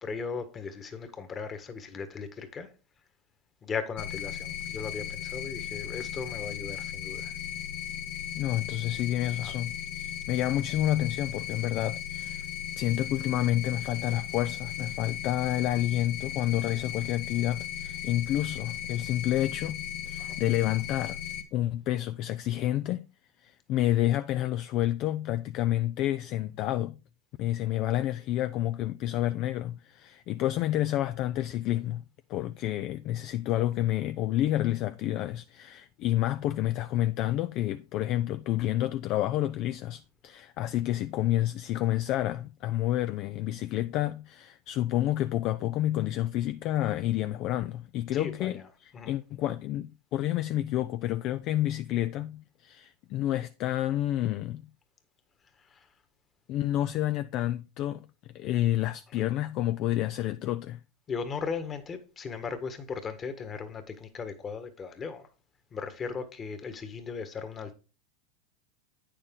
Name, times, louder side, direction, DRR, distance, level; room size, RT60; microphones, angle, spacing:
voice 1, 0.0-2.7 3.6-7.3 9.4-9.6 20.2-20.4 48.1-48.7 48.9-49.1 55.6-55.9 61.1-65.3 65.7-67.7, left 5 dB, 25° left, 1.6 m, -37 dB
sound 1, 4.0-21.4, left 10 dB, 70° left, 1.8 m, -37 dB
voice 2, 8.3-12.5 12.8-21.2 21.5-23.1 23.4-27.0 27.4-32.0 32.3-48.6 49.0-54.7 56.5-58.1 58.3-60.8, left 13 dB, 50° left, 0.4 m, -29 dB
8.9 x 6.6 x 3.8 m
hypercardioid pair, 110°, 0 cm